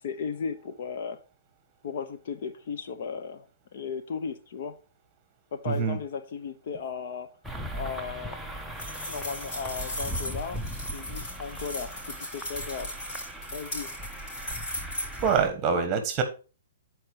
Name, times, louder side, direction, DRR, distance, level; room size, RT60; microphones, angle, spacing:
voice 1, 0.0-1.2 1.8-4.8 5.5-7.3 7.7-8.7 9.0-10.6 10.9-12.9 13.5-13.9 15.7-15.9, left 6 dB, 55° left, 0.9 m, -36 dB
voice 2, 5.7-6.0 15.2-16.2, right 6 dB, 25° right, 1.4 m, -25 dB
sound 1, 7.4-15.5, right 1 dB, ahead, 0.7 m, -38 dB
sound 2, 8.8-15.3, left 1 dB, 35° left, 4.4 m, -37 dB
9.3 x 4.7 x 4.7 m
hypercardioid pair, 155°, 0 cm